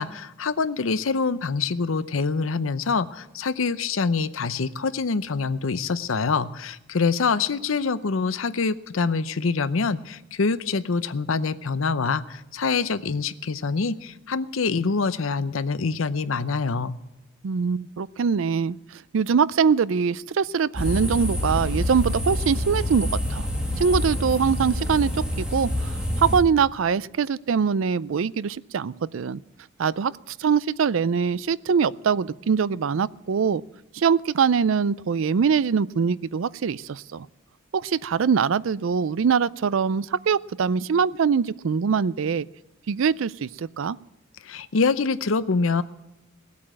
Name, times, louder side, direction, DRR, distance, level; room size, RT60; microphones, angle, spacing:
voice 1, 0.0-17.0 44.4-45.8, left 4 dB, 70° left, 15 dB, 0.7 m, -25 dB
voice 2, 17.4-23.4 23.8-29.4 29.8-33.6 33.9-37.3 37.7-42.5 42.9-44.0, right 6 dB, 70° right, 20 dB, 0.4 m, -23 dB
sound 1, 20.8-26.4, left 1 dB, 5° right, 2.2 m, -27 dB
18.0 x 8.5 x 7.6 m, 0.91 s
head